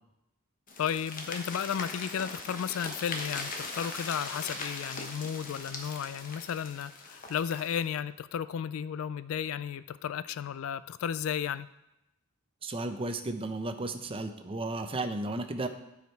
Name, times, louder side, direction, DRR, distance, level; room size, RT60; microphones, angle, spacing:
sound 1, 0.7-7.9, left 3 dB, 40° left, 1.1 m, -40 dB
voice 1, 0.8-11.7, left 8 dB, 70° left, 16 dB, 0.3 m, -34 dB
voice 2, 12.6-15.7, right 2 dB, 25° right, 7 dB, 0.6 m, -34 dB
11.0 x 5.0 x 4.5 m, 0.91 s
head